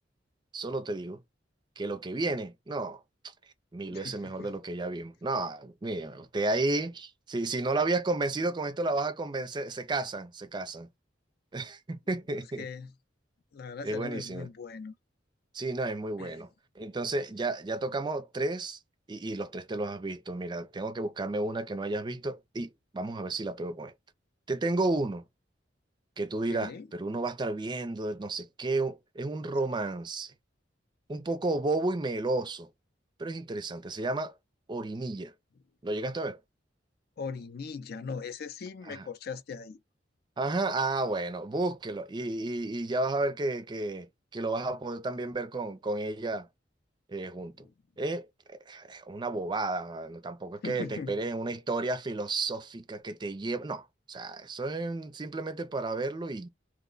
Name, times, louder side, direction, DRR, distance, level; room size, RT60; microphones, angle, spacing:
voice 1, 0.5-1.2 1.8-3.3 3.7-10.9 11.5-12.7 13.8-14.5 15.5-16.5 16.8-18.8 19.1-23.9 24.5-25.2 26.2-30.3 31.1-32.7 33.2-34.4 34.7-35.3 35.8-36.4 38.9-39.0 40.4-46.5 47.1-47.7 48.0-56.5, right 2 dB, 25° right, 0.4 m, -32 dB
voice 2, 3.9-4.5 12.3-12.9 13.5-14.9 16.2-16.3 26.5-26.9 37.2-39.8 47.6-47.7 50.6-51.2, left 5 dB, 55° left, 0.4 m, -40 dB
3.0 x 2.1 x 3.7 m
head